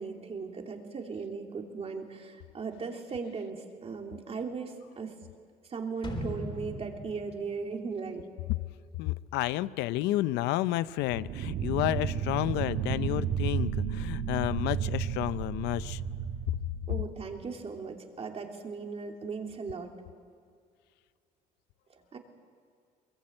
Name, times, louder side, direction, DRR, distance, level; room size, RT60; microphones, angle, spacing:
voice 1, 0.0-5.2 5.7-8.3 16.9-19.9 21.9-22.2, right 5 dB, 35° right, 3 dB, 2.8 m, -38 dB
sound 1, 6.0-8.8 9.2-9.3, equal, 30° left, 4.1 m, -40 dB
voice 2, 9.0-16.0, left 16 dB, 90° left, 16 dB, 0.6 m, -31 dB
sound 2, 11.1-17.5, right 8 dB, 70° right, 1.6 m, -33 dB
22.5 x 22.5 x 8.7 m, 2.2 s
cardioid pair, 110°, 17 cm